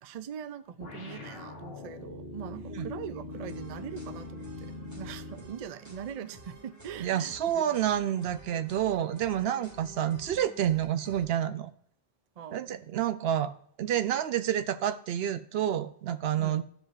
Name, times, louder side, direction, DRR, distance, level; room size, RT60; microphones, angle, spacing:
voice 1, 0.0-7.8 12.4-12.9 16.4-16.6, right 8 dB, 50° right, 11 dB, 0.4 m, -42 dB
sound 1, 0.8-5.5, left 3 dB, 70° left, 1.7 m, -42 dB
sound 2, 3.3-11.3, right 1 dB, 15° right, 1.4 m, -51 dB
voice 2, 7.0-11.7 12.5-13.5 13.8-16.6, right 10 dB, 75° right, 11 dB, 0.8 m, -29 dB
14.5 x 5.0 x 2.5 m, 0.63 s
omnidirectional pair, 1.1 m